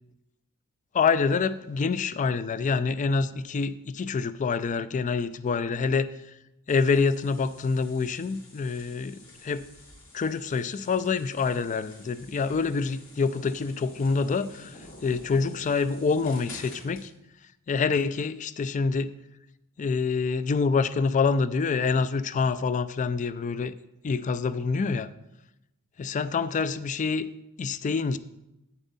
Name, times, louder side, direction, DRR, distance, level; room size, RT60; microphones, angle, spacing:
voice 1, 0.9-6.1 6.7-9.7 10.1-17.1 17.7-19.1 19.8-23.7 24.0-25.1 26.0-27.3 27.6-28.2, left 4 dB, 35° left, 15 dB, 0.3 m, -26 dB
sound 1, 6.7-17.1, left 2 dB, 60° left, 2.5 m, -49 dB
9.2 x 7.0 x 4.1 m, 0.90 s
head